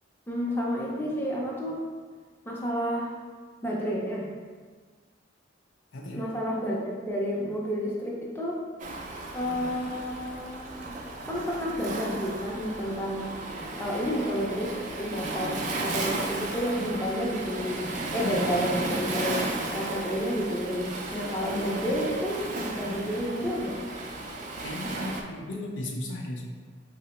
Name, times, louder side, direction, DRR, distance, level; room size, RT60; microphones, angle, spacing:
voice 1, 0.3-1.8 2.5-3.1 3.6-4.3 6.1-8.6 9.3-11.0 11.3-13.2 13.8-23.8, equal, 10° left, -4 dB, 0.5 m, -30 dB
voice 2, 5.9-6.3 24.6-26.4, left 1 dB, 75° left, 1 dB, 0.6 m, -35 dB
Waves surf, 8.8-25.2, right 2 dB, 40° right, 0.4 m, -34 dB
3.7 x 2.0 x 4.1 m, 1.5 s
head